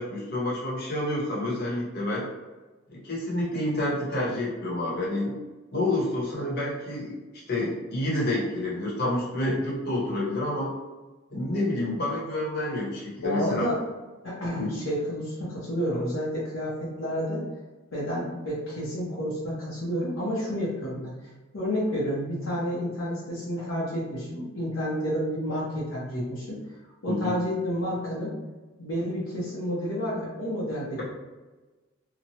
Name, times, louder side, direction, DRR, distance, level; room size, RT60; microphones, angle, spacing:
voice 1, 0.0-2.3 2.9-5.4 5.7-7.2 7.5-10.7 11.3-13.7 14.6-14.7 27.1-27.4, left 1 dB, 55° left, -5 dB, 1.0 m, -28 dB
voice 2, 13.2-13.8 14.2-17.4 17.9-21.1 21.5-26.6 27.0-28.3 28.8-31.0, equal, 75° left, -8 dB, 0.8 m, -30 dB
2.9 x 2.2 x 2.8 m, 1.2 s
head